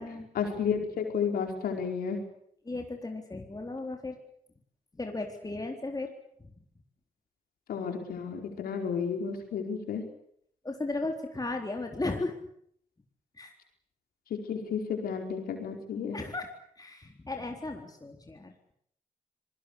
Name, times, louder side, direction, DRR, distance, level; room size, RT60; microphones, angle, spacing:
voice 1, 0.3-2.2 7.7-10.0 14.5-16.2, left 6 dB, 85° left, 4 dB, 4.7 m, -32 dB
voice 2, 2.7-4.2 5.0-6.1 6.4-6.5 10.6-12.3 13.4-13.5 16.1-16.5 16.8-18.7, left 2 dB, 25° left, 3 dB, 3.8 m, -35 dB
25.5 x 19.5 x 8.5 m, 0.68 s
supercardioid pair, 50°, 15 cm